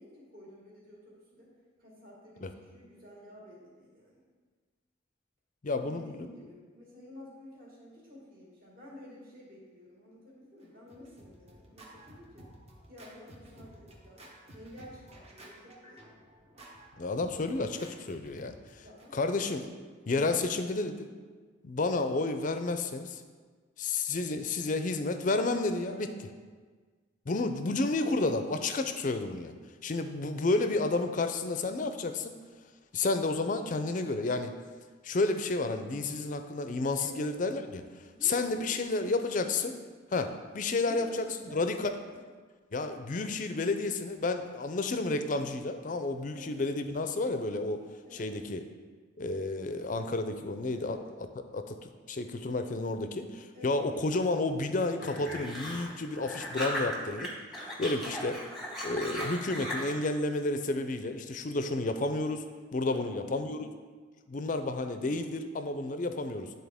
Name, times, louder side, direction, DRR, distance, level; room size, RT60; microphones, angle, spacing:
voice 1, 0.0-1.5 1.8-4.2 5.6-12.5 12.9-16.1 18.8-19.5 19.7-19.9 25.9-26.6 28.7-29.0 37.0-37.3 38.0-39.7 40.8-42.3 46.3-46.6 48.1-48.3 50.7-51.0 53.5-54.0 62.8-63.7, left 1 dB, 50° right, -6 dB, 2.1 m, -51 dB
voice 2, 5.6-6.3 17.0-18.8 19.1-19.7 20.1-21.1 21.6-23.2 23.8-26.1 27.3-29.5 29.8-32.3 32.9-34.5 35.0-37.8 38.2-39.7 40.1-41.3 41.5-41.9 42.7-47.8 48.1-48.6 49.2-51.0 51.5-51.8 52.1-57.3 57.8-58.4 58.8-62.4 62.7-63.6 64.3-66.5, left 3 dB, 40° left, 8 dB, 0.4 m, -31 dB
Scratching (performance technique), 10.6-19.1, right 1 dB, 30° right, 0.9 m, -53 dB
sound 1, 55.0-57.3 57.5-60.0, equal, ahead, 1.0 m, -37 dB
10.5 x 3.9 x 3.5 m, 1.5 s
head